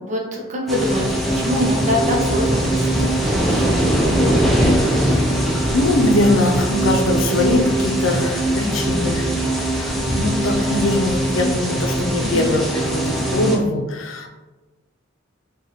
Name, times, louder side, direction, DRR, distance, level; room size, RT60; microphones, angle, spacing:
voice 1, 0.0-3.8 8.6-9.0 12.2-12.5, left 1 dB, 40° right, -1 dB, 0.8 m, -25 dB
sound 1, 0.7-13.6, right 1 dB, ahead, 0.5 m, -20 dB
voice 2, 4.6-9.3 9.6-14.3, left 2 dB, 80° left, 4 dB, 0.5 m, -22 dB
4.7 x 2.4 x 2.9 m, 1.2 s
head